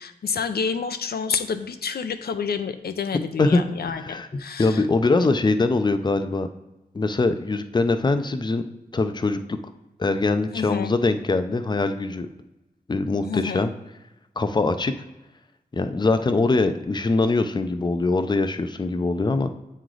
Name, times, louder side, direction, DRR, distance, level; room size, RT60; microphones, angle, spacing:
voice 1, 0.0-4.8 10.5-10.9 13.2-13.7, left 6 dB, 85° left, 9 dB, 0.5 m, -29 dB
voice 2, 3.9-6.5 6.9-8.7 8.9-9.6 10.0-12.3 12.9-13.7 14.4-14.9 15.7-19.5, left 3 dB, 30° left, 9 dB, 0.4 m, -22 dB
8.4 x 3.1 x 3.8 m, 1.0 s
wide cardioid pair, 110°, 16 cm